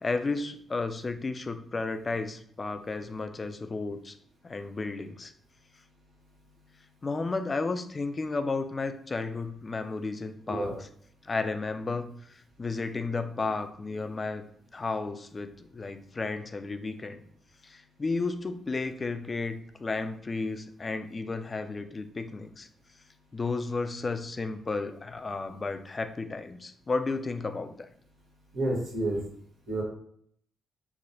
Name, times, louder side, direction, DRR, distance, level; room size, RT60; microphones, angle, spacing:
voice 1, 0.0-4.2 4.4-5.3 7.0-10.7 11.2-14.4 14.7-17.2 17.6-22.7 23.3-27.9, left 3 dB, 35° left, 9 dB, 0.3 m, -33 dB
voice 2, 28.5-29.2 29.7-29.8, right 1 dB, 75° right, -5 dB, 1.1 m, -29 dB
3.0 x 2.1 x 2.6 m, 0.64 s
supercardioid pair, 50°, 0 cm